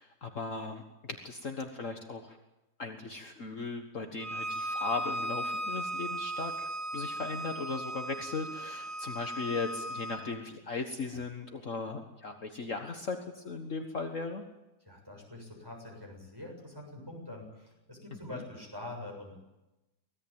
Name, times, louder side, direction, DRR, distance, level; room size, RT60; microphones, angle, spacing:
voice 1, 0.0-2.4 2.8-14.4 18.3-18.4, left 4 dB, 50° left, 5 dB, 1.8 m, -38 dB
Bowed string instrument, 4.2-10.2, right 1 dB, 50° right, 5.5 m, -37 dB
voice 2, 14.8-19.4, left 1 dB, 15° right, 1 dB, 7.2 m, -45 dB
25.0 x 17.5 x 8.8 m, 0.98 s
omnidirectional pair, 1.7 m